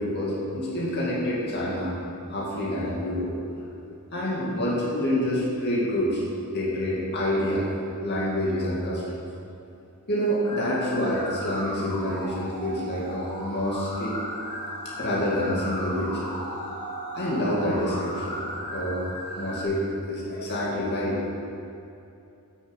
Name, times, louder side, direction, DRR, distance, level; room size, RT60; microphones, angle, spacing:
voice 1, 0.0-2.0 2.3-3.3 4.1-7.7 8.0-9.0 10.1-14.2 15.0-16.3 17.1-18.4 18.7-19.1 19.3-21.2, equal, 50° left, -5 dB, 2.3 m, -27 dB
sound 1, 10.4-19.7, equal, 25° left, 2.7 m, -36 dB
10.0 x 6.7 x 7.3 m, 2.7 s
head